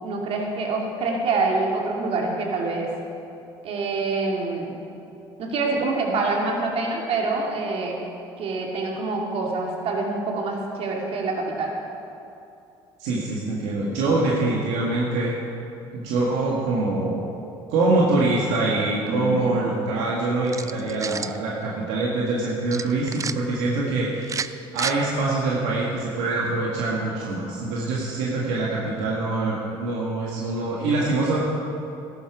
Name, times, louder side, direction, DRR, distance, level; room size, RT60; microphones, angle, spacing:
voice 1, 0.0-2.9 3.6-4.7 5.4-8.0 8.4-11.7 19.1-19.5, right 3 dB, 60° right, -1 dB, 2.6 m, -26 dB
voice 2, 13.0-15.3 15.9-17.3 17.7-24.5 24.7-31.4, right 2 dB, 80° right, -5 dB, 1.8 m, -24 dB
sound 1, 20.5-21.4 22.7-23.3 24.2-25.0, right 6 dB, 30° right, 0.5 m, -30 dB
14.0 x 11.0 x 4.9 m, 2.7 s
supercardioid pair, 70°, 11 cm